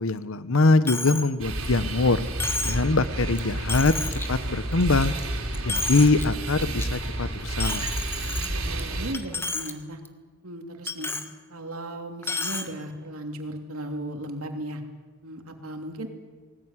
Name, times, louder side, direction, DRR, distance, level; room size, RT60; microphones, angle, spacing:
voice 1, 0.0-2.2 2.6-3.9 4.3-5.1 5.6-7.9, left 3 dB, 70° left, 14 dB, 1.0 m, -23 dB
Coin (dropping), 0.9-1.3 1.6-1.7 2.4-2.9 3.4-3.5 3.7-4.3 4.7-5.2 5.5-6.2 6.6-6.8 7.6-8.8 9.1-9.7 10.0-10.1 10.9-11.3 12.2-12.7, left 2 dB, 10° left, 1.4 m, -31 dB
sound 1, 1.4-9.1, right 1 dB, 70° right, 4.2 m, -30 dB
voice 2, 8.2-10.0 10.4-11.1 11.5-14.8 15.2-16.1, right 1 dB, 90° right, 4 dB, 3.0 m, -36 dB
19.5 x 19.5 x 9.8 m, 1.4 s
head